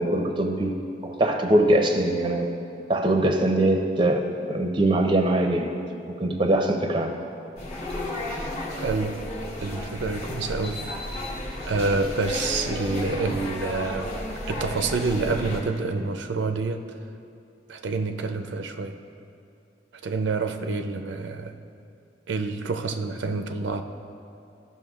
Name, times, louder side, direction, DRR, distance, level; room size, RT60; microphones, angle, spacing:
voice 1, 0.0-2.5 2.9-5.7 6.2-7.1, right 1 dB, 25° right, 4 dB, 0.5 m, -22 dB
sound 1, 7.6-15.6, left 1 dB, 35° left, 1.1 m, -33 dB
voice 2, 8.8-9.3 9.6-10.9 11.7-14.1 14.5-16.8 17.7-19.0 20.0-21.5 22.3-23.8, right 3 dB, 85° right, 7 dB, 0.5 m, -27 dB
14.0 x 5.7 x 2.4 m, 2.6 s
head